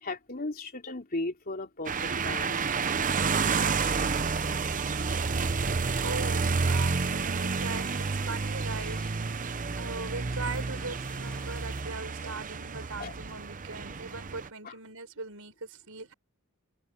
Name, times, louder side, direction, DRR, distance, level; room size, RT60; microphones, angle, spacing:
voice 1, 0.0-2.6 5.1-5.2 12.2-12.3 13.0-13.1 14.6-14.7, left 2 dB, 40° left, 3.2 m, -36 dB
sound 1, 1.8-14.5, right 4 dB, 35° right, 0.7 m, -30 dB
sound 2, 2.2-5.2 7.6-9.4 10.4-12.2, left 1 dB, 5° left, 5.0 m, -52 dB
voice 2, 6.0-9.4 9.8-16.1, right 3 dB, 70° right, 5.7 m, -40 dB
head